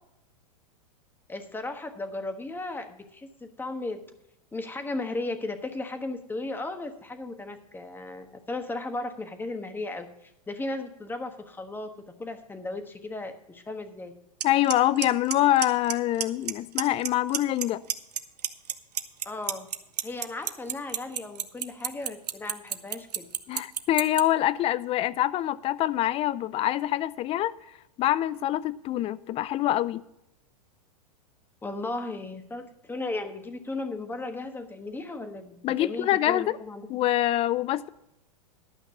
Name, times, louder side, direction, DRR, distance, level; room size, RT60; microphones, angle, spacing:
voice 1, 1.3-4.0 4.5-11.9 12.2-14.1 19.2-19.7 20.0-23.3 31.6-36.9, left 2 dB, 10° left, 7 dB, 1.3 m, -35 dB
voice 2, 14.4-17.8 23.5-27.5 28.0-30.0 35.6-36.6 36.9-37.9, left 13 dB, 30° left, 19 dB, 0.5 m, -25 dB
Clock, 14.4-14.5 14.7-15.0 15.3-15.9 16.2-16.5 16.8-17.6 17.9-24.2, right 10 dB, 85° right, 0.8 m, -27 dB
12.0 x 5.9 x 6.9 m, 0.82 s
hypercardioid pair, 115°, 20 cm